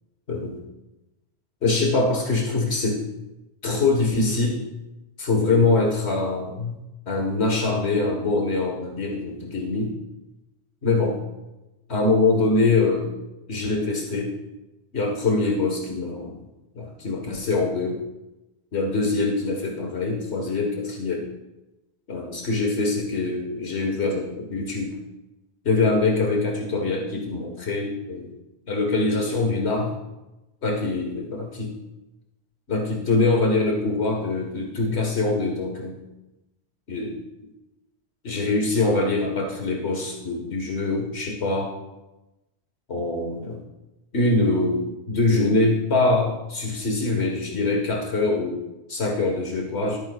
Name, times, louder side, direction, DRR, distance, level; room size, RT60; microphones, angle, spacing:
voice 1, 1.6-3.0 3.6-4.6 5.2-6.8 7.1-10.0 10.8-11.2 11.9-13.1 13.5-14.4 14.9-16.4 16.7-18.0 18.7-21.3 22.1-24.9 25.6-28.3 28.7-29.9 30.6-31.7 32.7-36.0 36.9-37.2 38.2-41.7 42.9-43.6 44.1-48.6 48.9-50.0, left 3 dB, 85° left, 0 dB, 1.8 m, -23 dB
23.5 x 8.7 x 2.4 m, 1.0 s
omnidirectional pair, 1.1 m